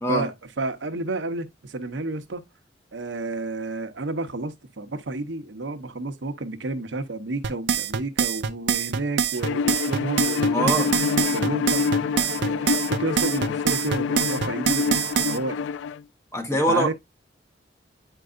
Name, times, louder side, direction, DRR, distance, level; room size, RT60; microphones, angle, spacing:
voice 1, 0.1-2.4 2.9-10.7 11.1-12.1 12.4-15.6 16.5-16.9, right 2 dB, 90° right, 0.9 m, -31 dB
sound 1, 7.4-15.4, right 7 dB, 70° right, 0.6 m, -24 dB
Bowed string instrument, 9.4-16.0, left 6 dB, 90° left, 0.3 m, -26 dB
voice 2, 10.5-10.9 16.3-16.9, right 1 dB, 15° left, 1.2 m, -23 dB
Piano, 10.6-15.7, right 1 dB, 10° right, 0.6 m, -43 dB
9.0 x 4.6 x 2.5 m
head